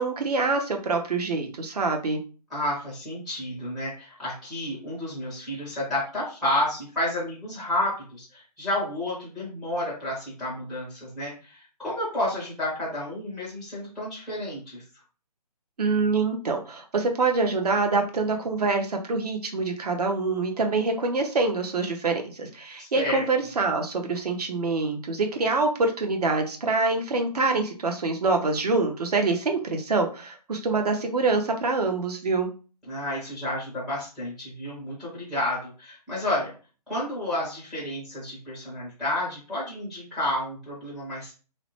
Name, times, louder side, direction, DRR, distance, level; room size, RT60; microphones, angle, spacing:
voice 1, 0.0-2.2 15.8-32.5, right 3 dB, 70° right, 4 dB, 0.7 m, -25 dB
voice 2, 2.5-14.8 22.8-23.2 32.9-36.5 36.9-41.3, left 1 dB, ahead, -7 dB, 0.4 m, -30 dB
2.8 x 2.0 x 3.0 m, 0.37 s
figure-of-eight pair, 150°, 21 cm